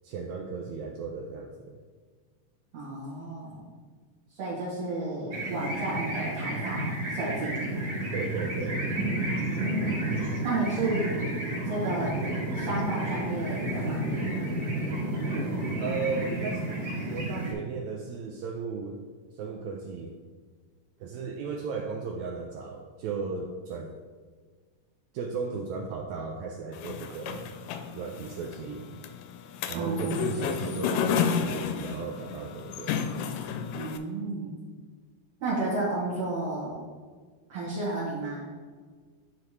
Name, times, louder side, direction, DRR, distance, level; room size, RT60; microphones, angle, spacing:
voice 1, 0.0-1.7 8.1-8.8 15.8-16.7 17.1-19.0 19.3-20.1 21.0-24.0 25.1-27.5 27.9-28.8 29.7-33.0, right 5 dB, 85° right, 2 dB, 1.6 m, -35 dB
voice 2, 2.7-3.6 4.4-7.5 9.5-10.1 10.4-11.1 11.6-12.1 12.5-14.1 29.7-30.2 33.7-34.6 35.4-36.7 37.5-38.4, right 2 dB, 60° right, -9 dB, 2.5 m, -32 dB
sound 1, 5.3-17.5, right 1 dB, 40° right, 1.8 m, -31 dB
sound 2, 26.7-34.0, left 7 dB, 90° left, 2.2 m, -31 dB
10.5 x 4.4 x 3.2 m, 1.5 s
omnidirectional pair, 3.7 m